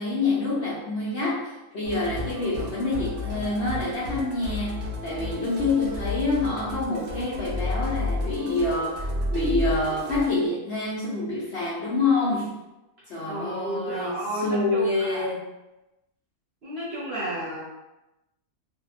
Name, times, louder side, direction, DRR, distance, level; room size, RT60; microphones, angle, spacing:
voice 1, 0.0-12.6 13.1-15.4, left 3 dB, 65° left, -8 dB, 0.7 m, -27 dB
Musical instrument, 1.8-10.3, left 1 dB, 80° right, 0.5 m, -32 dB
voice 2, 13.0-15.3 16.6-17.6, right 1 dB, 55° right, -7 dB, 0.8 m, -32 dB
2.7 x 2.2 x 2.4 m, 0.98 s
omnidirectional pair, 1.6 m